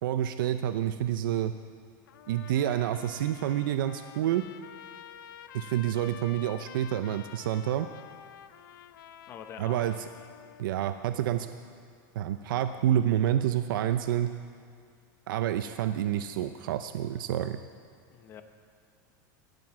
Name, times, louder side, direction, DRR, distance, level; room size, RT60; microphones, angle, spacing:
voice 1, 0.0-1.5 2.3-4.4 5.5-7.9 9.6-9.9 10.6-11.5 12.1-14.3 15.3-17.6, right 11 dB, 85° right, 9 dB, 0.6 m, -28 dB
Trumpet, 2.1-10.7, left 10 dB, 90° left, 0.6 m, -49 dB
voice 2, 9.3-10.1 18.1-18.4, left 8 dB, 20° left, 8 dB, 0.7 m, -45 dB
17.0 x 7.8 x 7.2 m, 2.2 s
supercardioid pair, 175°, 11 cm